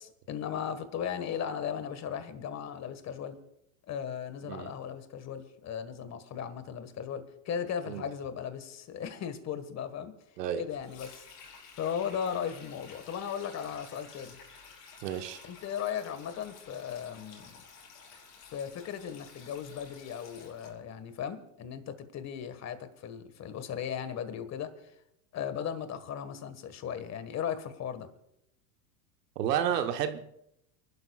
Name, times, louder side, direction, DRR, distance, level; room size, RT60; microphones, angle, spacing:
voice 1, 0.0-3.4 3.9-10.1 10.6-11.2 11.7-14.4 15.4-17.6 18.1-18.2 18.5-24.9 25.3-28.1, left 8 dB, 35° left, 1.6 m, -37 dB
Sink (filling or washing), 10.7-20.7, left 5 dB, 80° left, 5.0 m, -52 dB
voice 2, 15.0-15.4 29.4-30.2, right 9 dB, 80° right, 1.2 m, -31 dB
29.5 x 12.0 x 2.4 m
hypercardioid pair, 110°, 48 cm